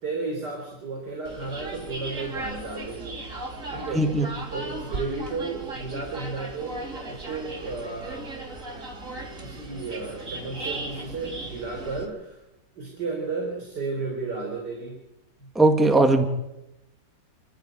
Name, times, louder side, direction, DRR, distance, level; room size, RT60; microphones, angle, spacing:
voice 1, 0.0-3.1 3.7-4.1 4.5-8.3 9.4-12.4 12.8-15.0, right 3 dB, 85° right, 2 dB, 4.3 m, -33 dB
sound 1, 1.2-12.0, right 2 dB, 50° right, 3.4 m, -37 dB
voice 2, 4.0-4.3 15.6-16.3, right 2 dB, ahead, 5 dB, 1.7 m, -19 dB
27.0 x 13.5 x 9.2 m, 0.93 s
omnidirectional pair, 1.8 m